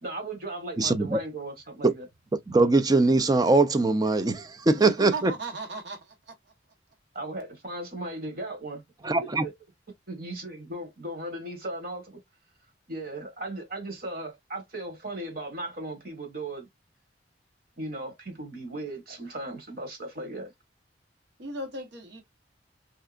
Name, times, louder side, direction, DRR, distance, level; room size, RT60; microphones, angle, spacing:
voice 1, 0.0-2.1 7.1-8.8 9.2-9.5 10.1-12.2 12.9-16.7 17.8-20.5, right 2 dB, 50° right, 1.3 m, -37 dB
voice 2, 0.8-1.2 1.8-1.9 2.5-5.3 9.0-9.4, right 3 dB, 20° right, 0.4 m, -22 dB
voice 3, 4.7-6.3 21.4-22.2, right 2 dB, 65° right, 1.0 m, -36 dB
3.3 x 2.8 x 2.4 m
head